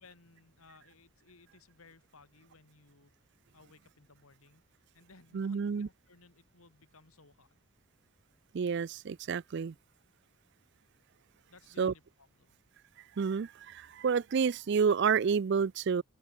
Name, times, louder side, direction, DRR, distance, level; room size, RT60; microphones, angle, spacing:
voice 1, 0.0-3.1 3.5-4.6 4.9-7.5 11.5-12.6, left 3 dB, 75° left, 2.5 m, -60 dB
voice 2, 5.3-5.9 8.5-9.7 11.8-11.9 13.2-16.0, right 6 dB, 50° right, 0.4 m, -29 dB
open air
head